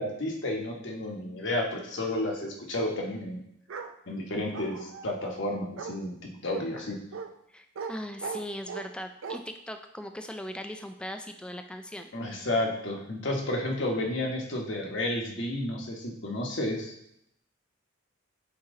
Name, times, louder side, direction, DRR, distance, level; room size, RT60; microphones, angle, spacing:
voice 1, 0.0-3.4 4.1-6.2 6.4-7.0 12.1-16.9, left 1 dB, 60° left, 0 dB, 1.2 m, -31 dB
Bark, 3.7-3.9 4.5-5.1 5.8-6.0 6.5-6.6 7.1-7.3 7.7-7.9 8.2-8.9 9.2-9.4, right 6 dB, 80° right, 0.5 m, -38 dB
voice 2, 7.5-12.1, left 1 dB, 5° left, 6 dB, 0.3 m, -39 dB
8.6 x 3.0 x 3.7 m, 0.75 s
head